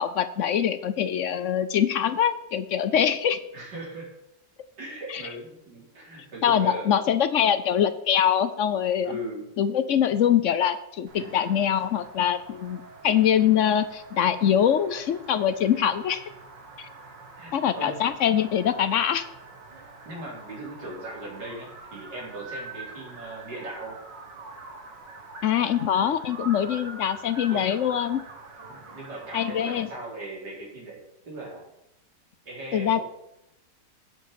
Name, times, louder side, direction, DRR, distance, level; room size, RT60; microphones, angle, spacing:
voice 1, 0.0-3.4 5.1-5.2 6.4-9.1 9.6-16.2 16.8-16.9 17.5-19.2 25.4-28.2 29.3-29.9 32.7-33.0, left 9 dB, 60° left, 12 dB, 0.8 m, -23 dB
voice 2, 3.5-4.1 4.8-7.1 9.0-9.5 11.1-11.3 15.7-15.9 17.3-18.0 20.0-24.0 27.5-27.6 28.7-31.7 32.4-33.0, right 1 dB, 65° right, -4 dB, 4.7 m, -39 dB
sound 1, 11.1-29.9, right 3 dB, 80° right, 2.4 m, -45 dB
11.0 x 7.8 x 7.0 m, 0.85 s
omnidirectional pair, 1.9 m